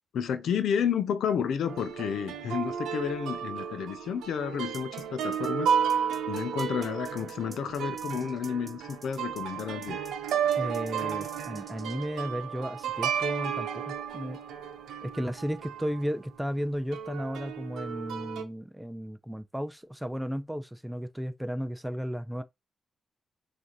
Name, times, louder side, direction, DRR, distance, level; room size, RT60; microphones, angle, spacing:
voice 1, 0.1-5.8 6.3-10.0, left 7 dB, 80° left, 0.6 m, -31 dB
sound 1, 1.7-16.0 16.9-18.4, right 7 dB, 90° right, 0.8 m, -33 dB
sound 2, 4.7-12.1, right 3 dB, 30° right, 1.5 m, -50 dB
voice 2, 10.6-14.4 15.0-22.4, equal, 5° right, 0.5 m, -34 dB
6.3 x 2.7 x 3.0 m
cardioid pair, 80°, 0 cm